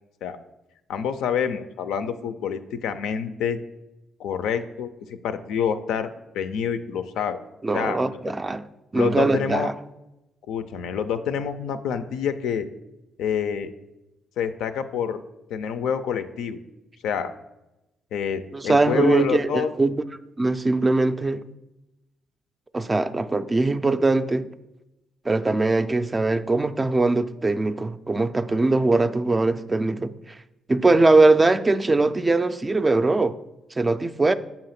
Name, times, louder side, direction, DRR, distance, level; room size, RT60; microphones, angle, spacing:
voice 1, 0.9-3.6 4.2-6.1 6.3-7.4 7.7-8.0 9.0-9.7 10.5-12.7 13.2-13.7 14.4-15.2 15.5-16.6 17.0-17.3 18.1-19.7, left 7 dB, 85° left, 0.4 m, -27 dB
voice 2, 7.6-8.7 8.9-9.7 18.5-19.9 20.4-21.4 22.7-24.5 25.3-30.4 30.7-33.3 33.8-34.3, right 2 dB, 20° right, 0.3 m, -21 dB
7.0 x 2.9 x 5.7 m
cardioid pair, 90°, 0 cm